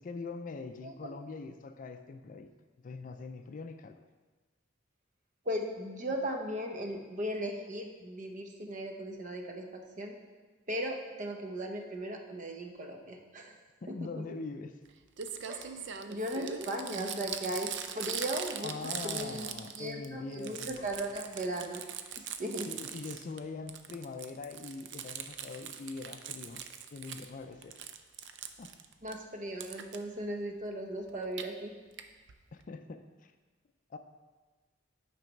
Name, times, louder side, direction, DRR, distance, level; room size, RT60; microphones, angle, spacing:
voice 1, 0.0-2.5 2.8-4.0 13.8-14.8 16.9-17.3 18.6-20.9 22.7-26.6 26.9-27.9 28.6-28.7 32.5-33.3 33.9-34.0, left 4 dB, 45° left, 8 dB, 0.4 m, -43 dB
voice 2, 5.4-10.1 10.7-13.5 13.9-14.0 15.5-18.7 19.0-21.8 22.2-23.0 29.0-31.7, right 1 dB, 40° right, 3 dB, 0.8 m, -37 dB
Crumpling crinkling, 14.8-14.9 15.2-20.1 20.3-23.4 23.7-27.3 27.6-29.1 29.6-30.0 31.1-31.4 32.0-32.1 32.3-32.4 32.6-32.7, right 8 dB, 65° right, 0.4 m, -41 dB
9.0 x 3.4 x 5.2 m, 1.3 s
head